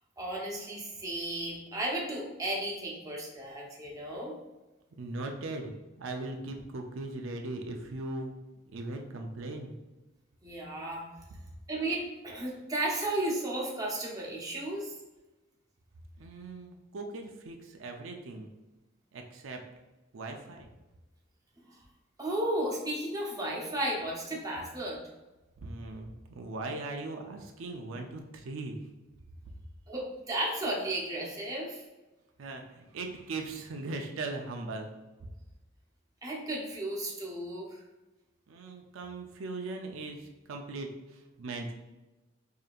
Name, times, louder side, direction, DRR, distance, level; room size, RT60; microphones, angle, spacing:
voice 1, 0.2-4.4 10.4-11.0 11.7-14.9 21.7-21.8 22.2-25.0 29.9-31.8 36.2-37.8, right 1 dB, 20° right, -3 dB, 0.8 m, -34 dB
voice 2, 5.0-5.7 6.0-8.4 8.7-9.7 16.2-18.5 19.1-19.6 20.1-20.7 25.6-28.8 32.4-34.9 38.5-41.7, right 2 dB, 85° right, 3 dB, 0.5 m, -39 dB
4.9 x 2.8 x 2.4 m, 1.1 s
head